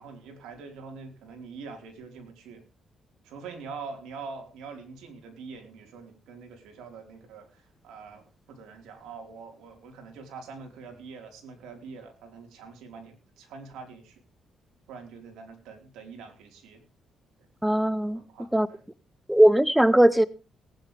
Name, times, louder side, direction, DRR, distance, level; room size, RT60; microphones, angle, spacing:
voice 1, 0.0-2.6 3.2-14.2 14.9-16.8 17.4-17.5 18.1-18.8, right 5 dB, 85° right, 4 dB, 4.5 m, -44 dB
voice 2, 17.6-18.2 18.5-18.7 19.3-20.2, right 1 dB, 5° right, 18 dB, 0.7 m, -19 dB
18.5 x 10.0 x 3.5 m, 0.35 s
cardioid pair, 90°, 0 cm